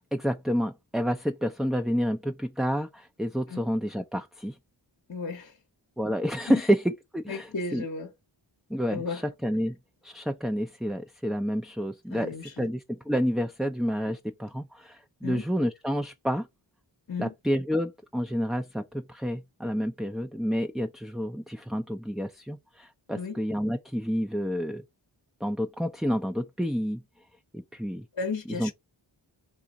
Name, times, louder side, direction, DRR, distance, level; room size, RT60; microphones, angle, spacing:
voice 1, 0.1-4.6 6.0-7.8 8.7-9.8 10.0-16.5 17.2-24.8 25.4-27.0 27.5-28.0 28.6-28.7, equal, ahead, 0.4 m, -29 dB
voice 2, 5.1-5.6 6.5-6.6 7.3-8.1 8.9-9.3 12.1-12.7 15.2-15.4 17.1-17.3 23.1-23.4 28.1-28.7, left 4 dB, 45° left, 0.8 m, -34 dB
3.6 x 2.5 x 4.0 m
cardioid pair, 40°, 48 cm